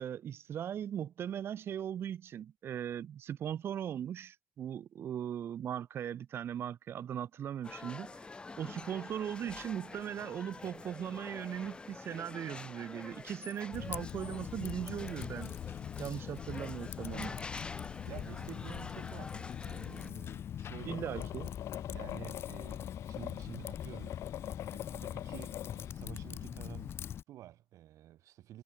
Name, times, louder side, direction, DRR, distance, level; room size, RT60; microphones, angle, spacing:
voice 1, 0.0-8.2 8.6-15.5 16.0-17.4 20.8-21.5, right 9 dB, 45° right, 0.5 m, -39 dB
sound 1, 7.6-20.1, left 3 dB, 20° left, 1.2 m, -47 dB
Typing, 13.7-27.2, left 9 dB, 45° left, 0.7 m, -42 dB
voice 2, 18.0-21.3 21.9-24.2 24.7-28.6, right 13 dB, 70° right, 5.2 m, -50 dB
sound 2, 20.8-25.9, left 13 dB, 65° left, 1.0 m, -45 dB
cardioid pair, 140°, 6 cm